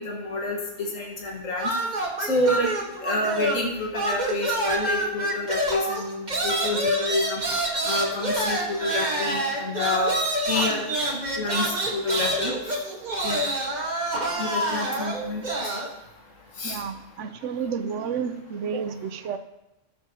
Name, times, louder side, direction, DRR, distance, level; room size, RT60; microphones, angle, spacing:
voice 1, 0.0-1.7 2.3-2.7 3.0-7.4 7.8-10.2 10.5-10.8 11.4-12.5 13.2-13.4 14.4-15.7 16.6-16.8, left 2 dB, 80° left, -1 dB, 1.9 m, -28 dB
sound 1, 1.6-3.7 3.9-15.9, right 1 dB, 35° right, 1.4 m, -27 dB
voice 2, 16.6-19.4, right 6 dB, 70° right, 10 dB, 1.0 m, -31 dB
18.0 x 6.9 x 2.8 m, 0.96 s
omnidirectional pair, 1.3 m